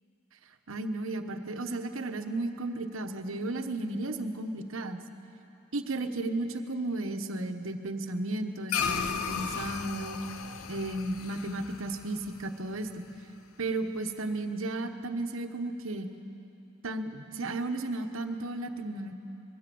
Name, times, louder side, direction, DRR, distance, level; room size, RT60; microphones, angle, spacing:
voice 1, 0.7-5.0 5.7-10.2 10.7-13.1 13.6-16.1 16.8-19.1, right 2 dB, 70° right, 7 dB, 1.1 m, -34 dB
sound 1, 8.7-13.3, left 6 dB, 85° left, 0.8 m, -35 dB
21.5 x 15.5 x 7.7 m, 2.8 s
head